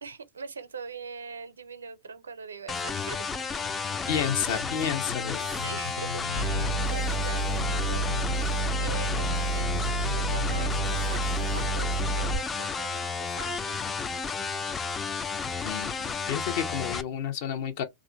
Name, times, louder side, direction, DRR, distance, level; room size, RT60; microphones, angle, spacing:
voice 1, 0.0-3.9 5.4-8.2 8.5-13.8, right 5 dB, 80° right, 0.5 m, -43 dB
sound 1, 2.7-17.0, left 5 dB, 20° left, 0.4 m, -32 dB
sound 2, 4.1-12.1, left 3 dB, 90° left, 0.5 m, -39 dB
voice 2, 4.1-5.5 15.6-17.8, left 9 dB, 55° left, 0.8 m, -30 dB
sound 3, 6.3-12.4, right 3 dB, 40° left, 1.1 m, -29 dB
3.1 x 2.4 x 3.3 m
hypercardioid pair, 95°, 0 cm